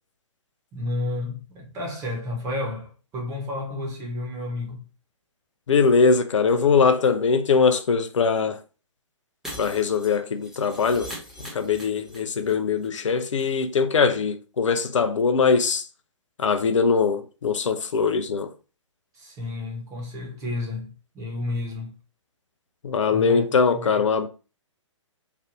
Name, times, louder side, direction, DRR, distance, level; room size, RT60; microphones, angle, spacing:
voice 1, 0.7-4.9 19.1-21.9 23.1-24.0, left 2 dB, 20° right, 1.1 m, -31 dB
voice 2, 5.7-8.6 9.6-11.1 11.4-15.9 16.4-18.5 22.8-24.3, left 5 dB, 70° left, 0.5 m, -21 dB
Shatter, 9.4-12.5 12.8-12.9 13.2-13.3, equal, ahead, 1.1 m, -41 dB
3.2 x 2.5 x 2.7 m
figure-of-eight pair, 125°, 16 cm